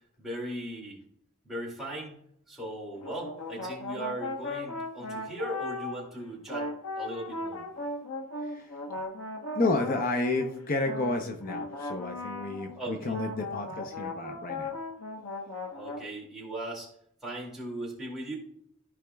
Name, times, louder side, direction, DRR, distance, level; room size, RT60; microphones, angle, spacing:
voice 1, 0.2-1.0 1.4-6.7 7.0-7.7 12.7-13.1 15.7-16.9 17.2-18.4, right 1 dB, ahead, -5 dB, 2.6 m, -38 dB
sound 1, 2.9-6.1 6.5-12.8 13.1-16.0, left 2 dB, 85° left, 1.1 m, -37 dB
voice 2, 8.4-8.8 9.5-14.8, left 2 dB, 40° left, 4 dB, 0.7 m, -31 dB
14.5 x 4.9 x 2.3 m, 0.70 s
head